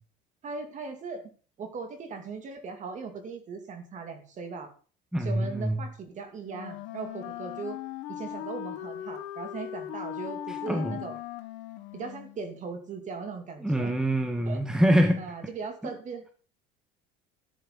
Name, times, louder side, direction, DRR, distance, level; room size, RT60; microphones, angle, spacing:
voice 1, 0.4-1.2 1.6-4.7 5.2-7.8 8.1-11.2 11.9-13.9 14.5-14.6 15.2-16.3, right 4 dB, 40° right, 6 dB, 2.6 m, -38 dB
voice 2, 5.1-5.8 10.5-11.0 13.6-15.2, equal, 5° right, 5 dB, 1.6 m, -25 dB
Wind instrument woodwind instrument, 6.5-12.4, left 12 dB, 70° left, 1.4 m, -39 dB
13.5 x 10.0 x 4.0 m, 0.40 s
cardioid pair, 125°, 20 cm